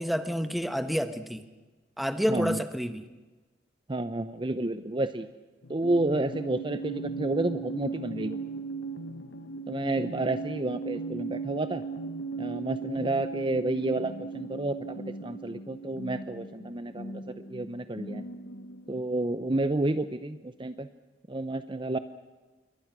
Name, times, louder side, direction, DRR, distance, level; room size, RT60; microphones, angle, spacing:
voice 1, 0.0-1.4 2.0-3.0, equal, ahead, 9 dB, 1.3 m, -29 dB
voice 2, 2.3-2.6 3.9-5.3 5.7-8.4 9.7-11.8 12.4-15.0 15.2-17.2 17.5-18.3 18.9-20.9 21.3-22.0, right 2 dB, 30° right, 11 dB, 0.8 m, -30 dB
sound 1, 5.6-19.0, right 4 dB, 85° left, 1.0 m, -38 dB
28.0 x 23.0 x 6.2 m, 1.2 s
head